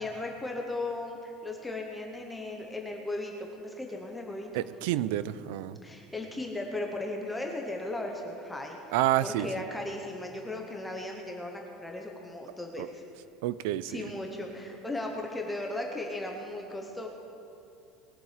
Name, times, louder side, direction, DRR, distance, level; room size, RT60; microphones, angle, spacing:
voice 1, 0.0-4.7 5.8-9.0 9.2-13.0 13.8-17.1, left 2 dB, 5° left, 1 dB, 0.8 m, -36 dB
voice 2, 4.5-5.8 8.9-9.5 12.8-12.9 13.4-14.0, right 13 dB, 70° right, 16 dB, 0.4 m, -29 dB
20.5 x 7.2 x 4.9 m, 2.6 s
cardioid pair, 180°, 0 cm